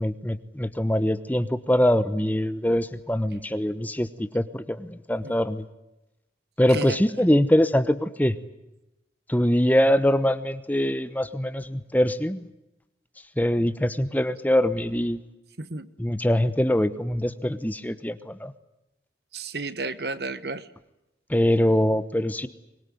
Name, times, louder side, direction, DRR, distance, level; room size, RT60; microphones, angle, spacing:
voice 1, 0.0-5.6 6.6-8.4 9.3-12.5 13.4-15.2 16.0-18.5 21.3-22.5, left 1 dB, 10° left, 12 dB, 1.0 m, -23 dB
voice 2, 6.7-7.2 15.6-15.9 19.3-20.7, right 3 dB, 65° right, 14 dB, 1.4 m, -33 dB
24.0 x 21.5 x 9.4 m, 0.93 s
head